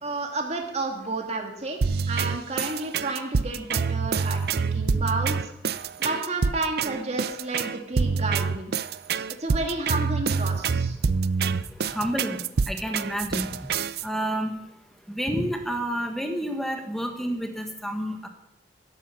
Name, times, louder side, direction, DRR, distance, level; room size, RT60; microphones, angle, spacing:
voice 1, 0.0-5.5 6.0-8.8 9.4-11.0, right 2 dB, 40° right, 2 dB, 2.1 m, -31 dB
sound 1, 1.8-14.0, right 5 dB, 65° right, 0.5 m, -26 dB
voice 2, 11.9-12.4 12.7-13.5 14.0-14.5 15.1-18.3, equal, ahead, 4 dB, 1.6 m, -29 dB
12.5 x 11.5 x 6.9 m, 0.84 s
head